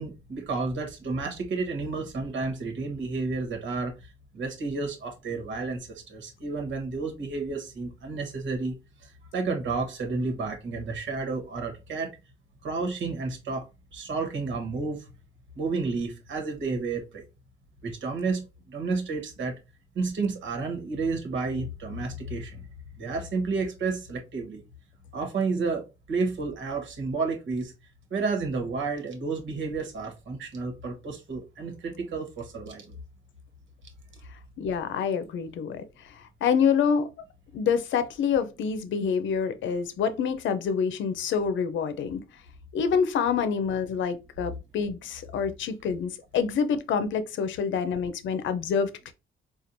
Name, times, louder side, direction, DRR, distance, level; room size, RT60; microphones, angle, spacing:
voice 1, 0.0-3.9 4.3-8.7 9.0-12.1 12.6-13.7 13.9-15.1 15.6-17.2 17.8-18.4 18.7-19.6 19.9-22.6 23.0-24.6 25.1-27.7 28.1-32.9, right 4 dB, 70° right, 1.3 m, -31 dB
voice 2, 34.6-35.8 36.1-37.1 37.5-42.2 42.7-49.1, left 6 dB, 75° left, 0.6 m, -27 dB
4.3 x 2.4 x 2.6 m
cardioid pair, 90°, 20 cm